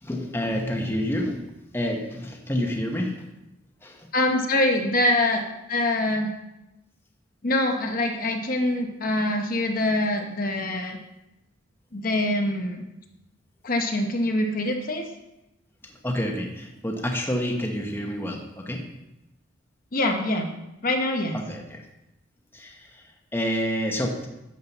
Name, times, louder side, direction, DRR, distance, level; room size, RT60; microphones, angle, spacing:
voice 1, 0.0-3.3 3.8-4.1 15.8-18.9 21.3-21.8 22.5-24.3, equal, 10° left, 1 dB, 1.0 m, -29 dB
voice 2, 4.1-5.4 5.7-6.3 7.4-11.0 11.9-12.8 13.6-15.1 19.9-20.5 20.8-21.4, left 1 dB, 45° left, 3 dB, 0.9 m, -24 dB
11.5 x 7.5 x 4.1 m, 0.94 s
head